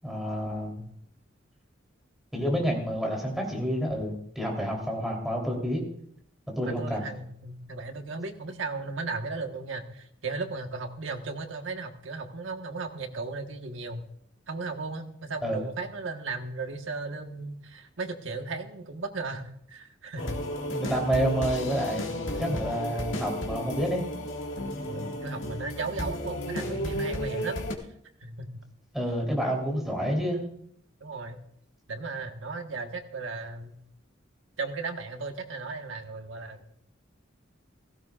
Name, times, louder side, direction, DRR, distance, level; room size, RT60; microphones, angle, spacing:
voice 1, 0.0-0.7 2.3-5.8 6.5-7.1 15.4-15.6 20.7-24.1 28.9-30.4, equal, ahead, -1 dB, 3.4 m, -29 dB
voice 2, 6.6-14.1 14.5-20.4 22.3-22.6 24.8-27.6 28.2-28.5 31.0-31.4 31.9-33.7 34.6-36.7, right 3 dB, 80° right, 5 dB, 1.3 m, -36 dB
sound 1, 20.2-27.7, equal, 80° left, 1.8 m, -33 dB
16.5 x 16.0 x 2.4 m, 0.68 s
head